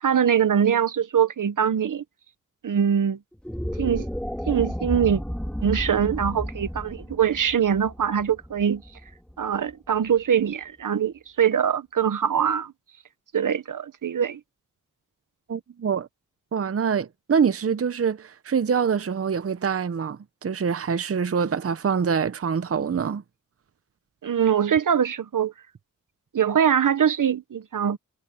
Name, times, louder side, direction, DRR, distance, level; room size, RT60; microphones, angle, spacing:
voice 1, 0.0-2.0 2.6-3.2 3.8-4.1 4.5-5.2 5.6-8.8 9.4-12.7 13.3-14.4 24.2-25.5 26.3-28.0, right 8 dB, 75° right, 1.1 m, -23 dB
sound 1, 3.3-9.7, equal, 5° left, 4.1 m, -32 dB
voice 2, 15.5-16.1 16.5-23.2, right 6 dB, 45° right, 0.8 m, -25 dB
wide cardioid pair, 70°, 31 cm